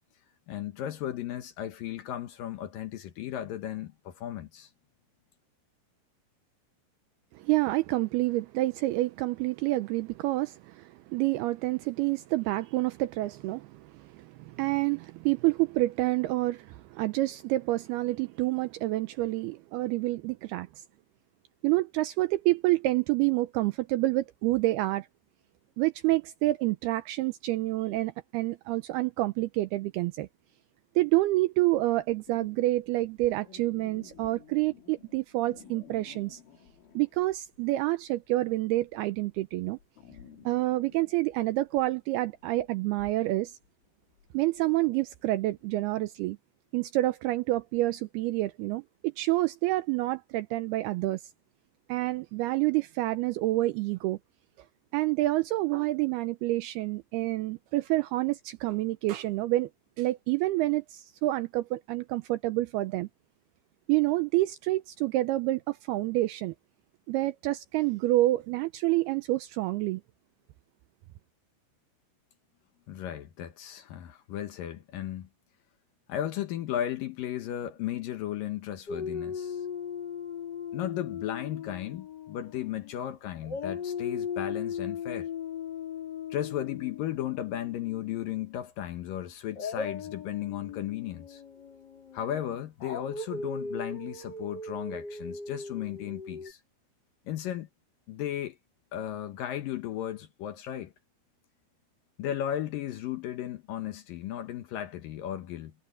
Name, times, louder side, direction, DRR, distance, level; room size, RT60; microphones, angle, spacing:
voice 1, 0.5-4.7 72.9-75.3 76.1-79.6 80.7-85.3 86.3-91.4 92.1-96.6 97.3-97.7 98.1-98.6 98.9-100.9 102.2-105.7, left 11 dB, 70° left, 2.2 m, -35 dB
voice 2, 7.3-20.7 21.6-25.1 25.8-30.3 31.0-36.4 37.0-39.8 40.5-43.6 44.3-46.4 46.7-51.2 51.9-54.2 54.9-59.7 60.0-63.1 63.9-66.5 67.1-70.0, right 18 dB, 85° right, 2.2 m, -28 dB
sound 1, 32.0-37.6 37.9-45.7, left 7 dB, 85° left, 5.8 m, -54 dB
Dog, 78.9-83.0 83.4-88.4 89.5-96.5, left 6 dB, 35° left, 1.7 m, -38 dB
omnidirectional pair, 5.3 m